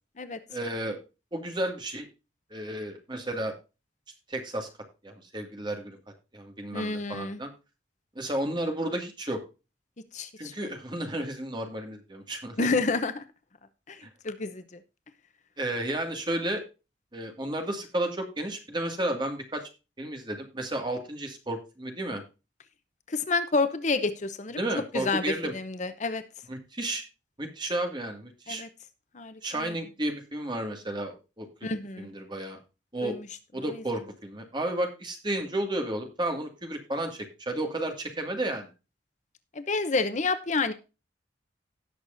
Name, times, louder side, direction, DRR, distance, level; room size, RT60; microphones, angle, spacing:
voice 1, 0.5-1.0 1.3-2.1 2.5-3.5 4.3-4.7 5.0-6.0 6.3-7.5 8.2-9.4 10.4-12.7 15.6-16.6 17.1-19.7 20.0-22.2 24.6-25.5 26.5-27.0 27.4-28.6 29.4-31.5 32.0-32.6 32.9-33.2 33.5-38.7, right 1 dB, 25° right, 4 dB, 2.2 m, -32 dB
voice 2, 6.7-7.4 10.1-10.7 12.6-13.2 13.9-14.8 23.1-24.6 24.9-26.2 28.5-28.7 29.1-29.7 31.6-32.1 33.0-33.3 33.7-33.8 39.5-40.7, left 3 dB, 40° left, 11 dB, 0.7 m, -29 dB
17.5 x 6.6 x 2.6 m, 0.30 s
head